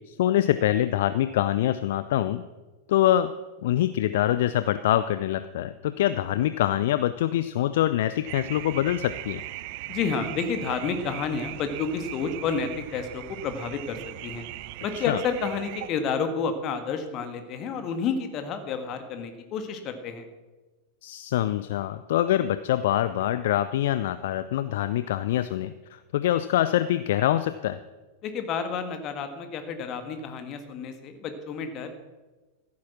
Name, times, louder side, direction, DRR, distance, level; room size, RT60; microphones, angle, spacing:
voice 1, 0.1-2.4 2.9-3.3 3.6-9.4 15.0-15.2 21.0-27.8, left 12 dB, 55° left, 13 dB, 0.4 m, -25 dB
sound 1, 8.3-15.9, right 18 dB, 45° right, 0.4 m, -39 dB
voice 2, 9.9-14.5 14.8-20.2 28.2-31.9, left 5 dB, 35° left, 8 dB, 1.7 m, -30 dB
15.0 x 8.5 x 6.0 m, 1.2 s
figure-of-eight pair, 90°, 0 cm